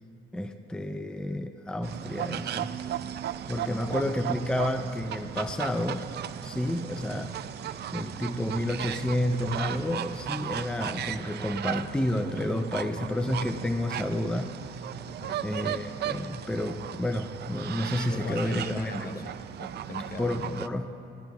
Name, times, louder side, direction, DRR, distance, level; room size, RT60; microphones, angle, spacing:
voice 1, 0.3-2.8 3.5-6.1 6.4-7.3 7.9-14.5 15.4-18.9 20.2-20.9, left 1 dB, 5° left, 7 dB, 0.5 m, -30 dB
sound 1, 1.8-20.7, right 10 dB, 55° right, 0.4 m, -36 dB
voice 2, 3.6-4.2 15.0-15.4 18.1-20.6, left 2 dB, 50° left, 5 dB, 1.1 m, -41 dB
18.5 x 16.5 x 2.4 m, 2.6 s
cardioid pair, 90°, 20 cm